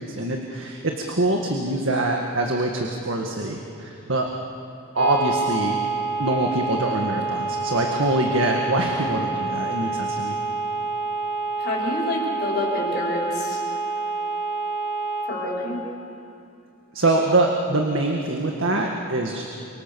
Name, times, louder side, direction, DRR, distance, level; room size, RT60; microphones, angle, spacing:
voice 1, 0.0-4.3 5.0-5.8 6.2-10.4 16.9-19.4, right 2 dB, 65° right, 1 dB, 2.0 m, -24 dB
sound 1, 4.9-15.3, right 3 dB, 90° right, 3.7 m, -27 dB
voice 2, 11.6-13.6 15.3-15.8, left 2 dB, 50° left, -4 dB, 5.4 m, -28 dB
29.5 x 25.0 x 7.1 m, 2.7 s
head